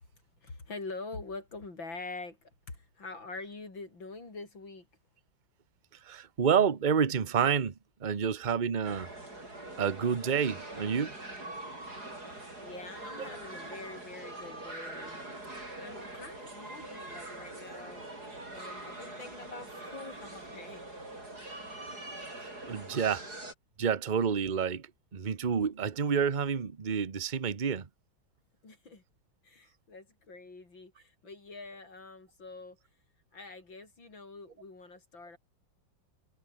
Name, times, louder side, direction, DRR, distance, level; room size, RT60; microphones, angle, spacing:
voice 1, 0.4-4.9 12.6-15.2 15.8-18.0 18.5-20.8 21.4-21.6 28.6-29.0 29.4-32.8 33.3-35.4, left 3 dB, 70° left, 6.3 m, -45 dB
voice 2, 6.0-7.7 8.0-9.1 9.8-11.2 22.4-23.3 23.8-27.9, right 7 dB, 30° right, 1.1 m, -29 dB
sound 1, 8.8-23.5, right 2 dB, 50° right, 8.7 m, -43 dB
omnidirectional pair, 2.2 m